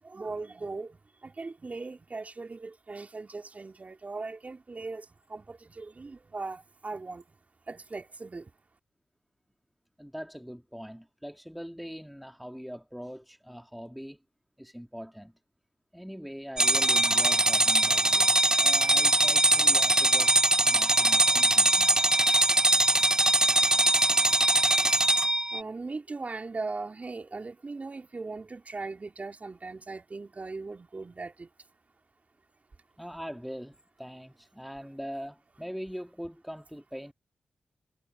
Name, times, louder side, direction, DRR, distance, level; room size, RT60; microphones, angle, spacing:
voice 1, 0.0-7.2 7.7-8.5 25.1-31.5, right 3 dB, 40° right, 3.3 m, -39 dB
voice 2, 10.0-14.2 14.6-15.3 15.9-20.3 20.6-22.0 33.0-37.1, equal, ahead, 2.1 m, -42 dB
sound 1, 16.6-25.6, right 2 dB, 20° right, 0.4 m, -22 dB
supercardioid pair, 45°, 4 cm